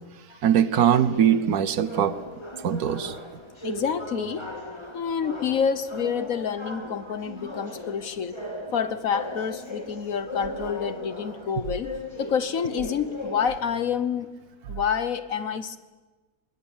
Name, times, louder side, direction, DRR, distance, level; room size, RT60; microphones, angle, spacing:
voice 1, 0.4-2.2 2.6-3.2, right 9 dB, 75° right, 1.4 m, -21 dB
sound 1, 0.7-13.8, left 1 dB, 15° left, 2.4 m, -38 dB
voice 2, 3.6-4.5 4.9-8.3 8.7-11.9 12.2-14.3 14.7-15.8, left 7 dB, 60° left, 1.3 m, -28 dB
21.5 x 20.5 x 8.8 m
omnidirectional pair, 1.7 m